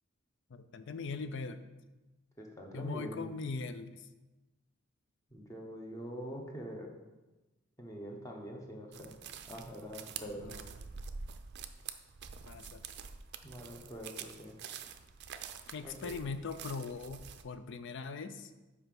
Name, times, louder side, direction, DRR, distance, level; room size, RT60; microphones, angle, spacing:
voice 1, 0.5-1.7 2.7-4.1 10.2-10.7 12.5-12.8 15.7-18.5, left 4 dB, 60° left, 10 dB, 0.5 m, -41 dB
voice 2, 2.4-3.2 5.3-6.9 7.8-9.1 9.5-10.5 13.4-14.6 15.8-16.1, equal, 15° left, 0 dB, 1.1 m, -44 dB
sound 1, 8.9-17.4, right 6 dB, 55° right, 0.5 m, -47 dB
5.5 x 4.9 x 5.9 m, 1.1 s
head